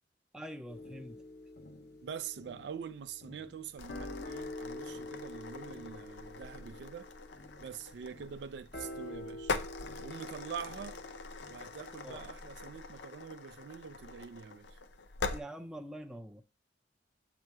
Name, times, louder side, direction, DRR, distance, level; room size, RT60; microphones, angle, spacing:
voice 1, 0.3-1.2 12.0-12.2 15.3-16.4, equal, 5° right, 0.5 m, -45 dB
sound 1, 0.7-12.3, left 1 dB, 60° left, 1.0 m, -47 dB
voice 2, 2.0-7.1 7.6-9.5 10.0-11.0 11.5-14.8, right 7 dB, 70° right, 0.4 m, -45 dB
sound 2, 3.8-15.4, left 4 dB, 75° left, 0.5 m, -43 dB
7.6 x 2.9 x 4.6 m
head